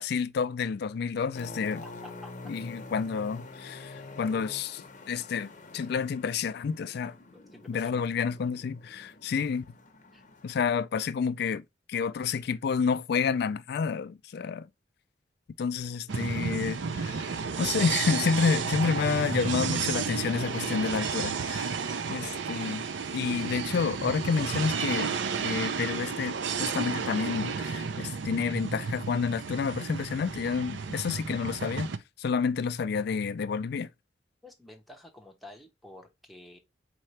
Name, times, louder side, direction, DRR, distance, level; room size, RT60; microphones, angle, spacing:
voice 1, 0.0-1.8 2.4-7.2 7.7-9.6 10.4-14.7 15.6-21.8 22.1-22.8 23.1-25.1 25.4-26.3 26.6-31.9 32.2-33.9, left 5 dB, 60° left, 0.3 m, -29 dB
sound 1, 1.3-10.8, left 2 dB, 45° left, 0.7 m, -46 dB
voice 2, 1.8-2.5 7.3-8.0 10.1-10.2 34.4-36.6, left 1 dB, ahead, 0.8 m, -50 dB
sound 2, 16.1-32.0, right 6 dB, 85° right, 0.5 m, -32 dB
4.4 x 2.8 x 3.2 m
head